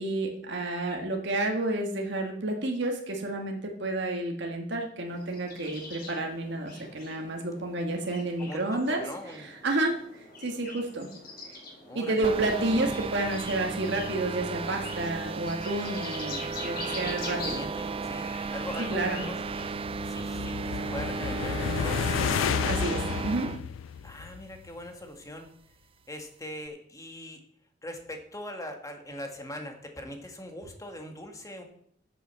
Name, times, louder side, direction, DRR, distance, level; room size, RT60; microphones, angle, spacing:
voice 1, 0.0-9.0 9.6-11.1 11.5-11.6 12.0-17.7 18.8-19.2 22.6-23.6, right 2 dB, 65° right, 2 dB, 1.7 m, -30 dB
sound 1, 5.1-19.7, left 2 dB, 55° left, 3.7 m, -44 dB
voice 2, 8.4-9.5 11.9-12.3 12.7-12.9 16.7-19.7 20.0-22.2 24.0-25.5 26.1-27.4 27.8-31.6, left 1 dB, 20° left, 4 dB, 1.8 m, -41 dB
sound 2, 12.2-23.6, right 4 dB, 30° right, 0.3 m, -34 dB
sound 3, 19.2-24.7, left 8 dB, 90° left, 0.3 m, -32 dB
8.8 x 7.7 x 7.0 m, 0.64 s
head